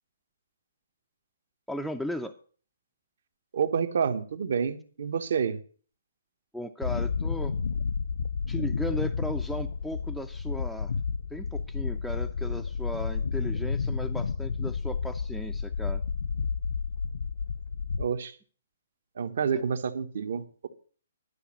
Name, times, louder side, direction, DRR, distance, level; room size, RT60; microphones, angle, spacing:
voice 1, 1.7-2.3 6.5-7.5 8.5-10.9 11.3-16.0 19.5-19.6, equal, ahead, 0.4 m, -36 dB
voice 2, 3.5-5.6 18.0-18.3 19.2-20.7, right 6 dB, 65° right, 1.2 m, -29 dB
sound 1, 6.8-18.0, left 5 dB, 85° left, 0.4 m, -31 dB
11.5 x 5.2 x 8.7 m
hypercardioid pair, 165°, 0 cm